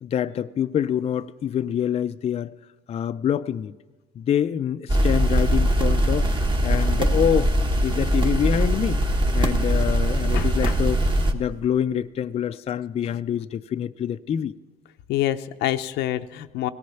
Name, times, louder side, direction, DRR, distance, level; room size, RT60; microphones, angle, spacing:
voice 1, 0.0-2.5 2.9-3.7 4.2-6.3 6.6-7.5 7.8-9.0 9.3-11.0 11.3-14.5, left 9 dB, 35° left, 0.4 m, -26 dB
sound 1, 4.9-11.3, right 1 dB, 30° right, 1.4 m, -21 dB
voice 2, 10.3-10.8 15.1-16.7, left 13 dB, 85° left, 0.6 m, -27 dB
18.0 x 13.5 x 5.7 m
cardioid pair, 110°, 17 cm